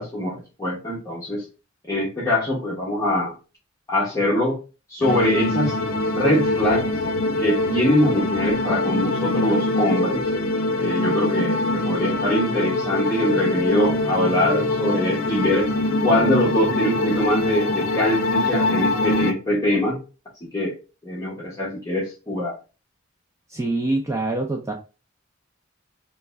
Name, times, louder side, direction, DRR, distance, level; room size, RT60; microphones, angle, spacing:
voice 1, 0.0-1.4 1.9-3.3 3.9-4.6 4.9-5.7 6.1-6.8 7.4-10.3 10.8-15.7 16.0-20.0 20.5-20.8 21.0-22.6, left 1 dB, 15° left, -6 dB, 0.8 m, -23 dB
sound 1, 5.0-19.3, left 2 dB, 75° left, 0.5 m, -23 dB
voice 2, 23.5-24.7, right 2 dB, 15° right, 1 dB, 0.4 m, -25 dB
3.3 x 2.1 x 3.3 m, 0.32 s
head